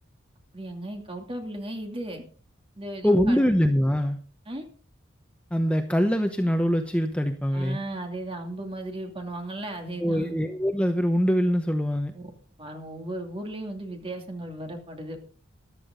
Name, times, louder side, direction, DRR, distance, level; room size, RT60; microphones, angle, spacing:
voice 1, 0.5-2.2 2.8-3.5 4.5-4.7 7.5-10.3 12.1-12.3 12.6-15.2, right 1 dB, 30° right, 3 dB, 2.7 m, -36 dB
voice 2, 3.0-4.2 5.5-7.8 10.0-12.1, equal, 5° left, 6 dB, 0.9 m, -23 dB
14.5 x 11.5 x 3.9 m, 0.40 s
head